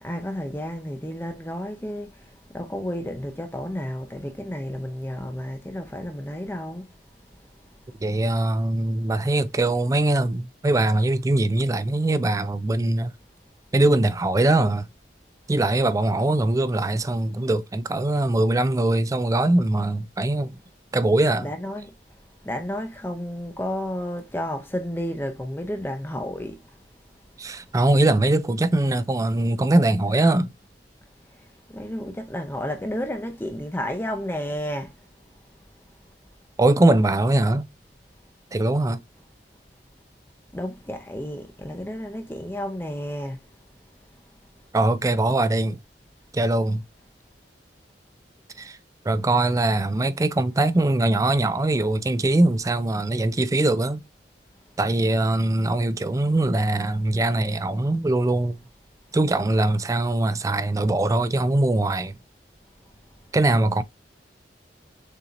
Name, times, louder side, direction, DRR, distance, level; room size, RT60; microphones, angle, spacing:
voice 1, 0.0-2.1 2.5-6.8 21.4-21.8 22.4-26.6 31.7-34.9 40.5-43.4, equal, 10° left, 0.7 m, -31 dB
voice 2, 8.0-13.1 13.7-14.9 15.5-20.6 20.9-21.5 27.4-30.5 36.6-37.7 38.5-39.0 44.7-45.8 46.3-46.8 48.6-48.8 49.1-54.0 54.8-58.6 59.1-62.1 63.3-63.8, right 2 dB, 20° right, 0.3 m, -22 dB
6.8 x 2.8 x 2.5 m
head